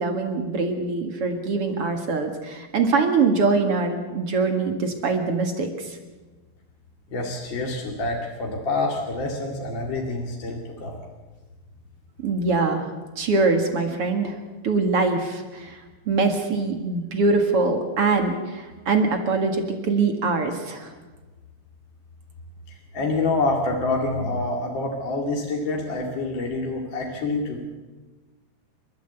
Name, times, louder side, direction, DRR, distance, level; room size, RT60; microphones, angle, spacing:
voice 1, 0.0-6.0 12.2-12.9 13.2-14.4 14.6-15.8 16.1-20.9, right 3 dB, 45° right, 5 dB, 2.1 m, -23 dB
voice 2, 7.1-11.0 22.9-27.6, left 2 dB, 35° left, 0 dB, 2.3 m, -27 dB
29.5 x 13.0 x 8.0 m, 1.3 s
omnidirectional pair, 4.6 m